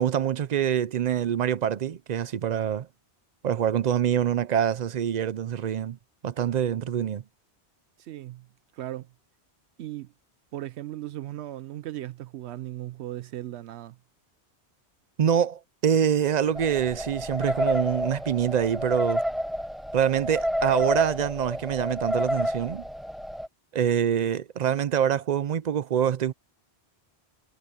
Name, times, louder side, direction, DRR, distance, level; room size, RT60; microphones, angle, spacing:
voice 1, 0.0-2.9 3.4-6.0 6.2-7.2 15.2-19.2 19.9-22.9 23.7-26.3, right 9 dB, 50° right, 0.5 m, -25 dB
voice 2, 8.0-8.5 8.7-9.1 9.8-10.1 10.5-14.0, right 14 dB, 80° right, 0.8 m, -37 dB
sound 1, 16.6-23.5, equal, ahead, 0.4 m, -29 dB
omnidirectional pair, 1.1 m